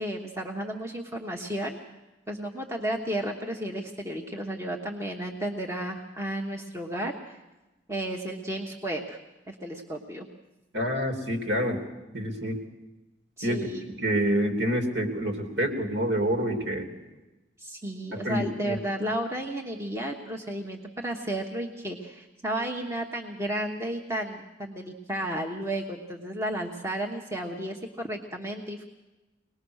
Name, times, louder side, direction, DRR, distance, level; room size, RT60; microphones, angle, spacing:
voice 1, 0.0-1.8 2.3-7.1 7.9-9.2 9.5-10.3 13.4-13.8 17.6-28.8, right 1 dB, 15° right, 1 dB, 1.2 m, -33 dB
voice 2, 10.7-11.8 12.1-12.6 13.4-13.7 14.0-16.9 18.1-18.8, equal, 70° right, 4 dB, 3.2 m, -27 dB
24.0 x 19.5 x 6.4 m, 1.1 s
head